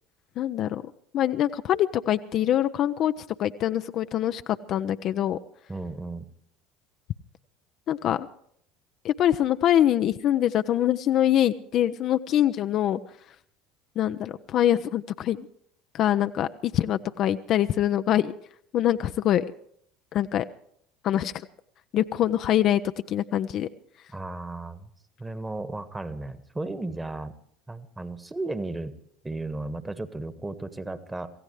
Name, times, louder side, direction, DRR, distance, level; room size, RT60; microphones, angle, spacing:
voice 1, 0.4-0.8 1.1-3.1 3.4-4.4 4.7-5.4 7.9-8.3 9.0-13.0 14.0-15.5 15.9-16.5 16.7-18.3 18.7-19.4 20.1-20.4 21.0-21.3 21.9-22.8 23.1-23.7, left 11 dB, 45° left, 10 dB, 0.6 m, -24 dB
voice 2, 5.7-6.3 24.1-24.9 25.2-27.3 27.7-28.9 29.2-31.3, right 2 dB, 15° right, 12 dB, 1.4 m, -34 dB
26.5 x 16.0 x 3.2 m, 0.67 s
figure-of-eight pair, 65°, 0 cm